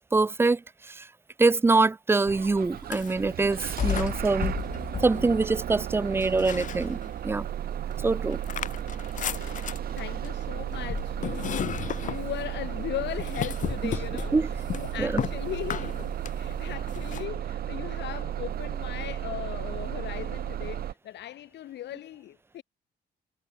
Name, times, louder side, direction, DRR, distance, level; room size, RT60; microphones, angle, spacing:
voice 1, 0.1-1.1 1.4-4.5 5.0-7.0 7.2-7.5 8.0-8.4 14.3-14.5 15.0-15.2, right 3 dB, 15° right, 0.4 m, -24 dB
Bus / Engine starting, 2.3-20.9, right 10 dB, 55° right, 3.2 m, -34 dB
sound 1, 2.8-3.3 3.8-5.7 6.2-7.3 7.7-17.3, left 9 dB, 45° left, 1.1 m, -35 dB
voice 2, 9.3-16.1 16.4-22.6, left 13 dB, 70° left, 5.6 m, -38 dB
cardioid pair, 150°, 18 cm